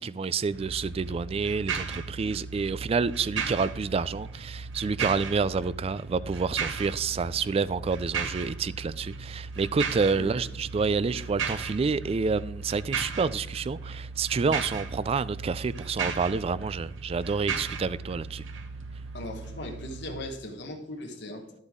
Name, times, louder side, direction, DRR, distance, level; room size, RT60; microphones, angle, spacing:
voice 1, 0.0-18.5, right 5 dB, 30° right, 0.3 m, -28 dB
sound 1, 0.5-20.3, right 5 dB, 90° right, 0.9 m, -36 dB
voice 2, 19.1-21.5, left 1 dB, 65° left, 1.3 m, -38 dB
11.0 x 8.0 x 3.7 m
head